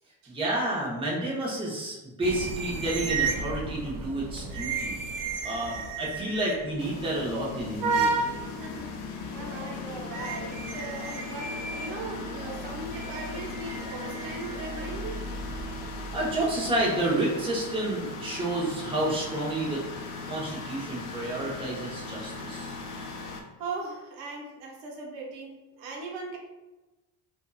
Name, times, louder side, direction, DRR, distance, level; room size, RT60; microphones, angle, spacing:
voice 1, 0.2-5.0 5.4-8.3 16.1-19.8 20.3-22.8, right 1 dB, 10° right, -5 dB, 0.8 m, -30 dB
sound 1, 2.2-17.1, right 4 dB, 50° right, 0.6 m, -34 dB
sound 2, 6.8-23.4, left 3 dB, 85° left, 0.6 m, -39 dB
voice 2, 8.6-15.2 23.6-26.4, right 3 dB, 70° right, -1 dB, 0.9 m, -39 dB
sound 3, 9.2-15.1, left 2 dB, 40° left, 0.6 m, -46 dB
2.7 x 2.5 x 2.3 m, 1.1 s
supercardioid pair, 90°, 45 cm